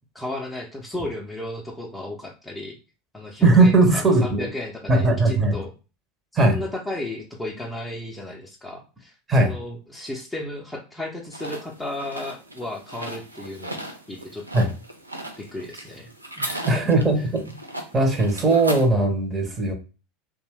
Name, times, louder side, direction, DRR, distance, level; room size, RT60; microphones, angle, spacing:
voice 1, 0.1-2.8 3.1-5.7 6.4-14.7 15.4-16.1 16.4-17.0, left 1 dB, 5° left, -1 dB, 0.6 m, -34 dB
voice 2, 3.4-4.5 4.9-5.6 6.4-6.6 9.3-9.5 14.5-14.7 16.7-17.6 17.9-19.7, right 2 dB, 20° right, 3 dB, 0.8 m, -19 dB
sound 1, 11.3-18.9, right 1 dB, 90° right, 0.4 m, -37 dB
2.5 x 2.2 x 3.3 m, 0.33 s
figure-of-eight pair, 80°, 0 cm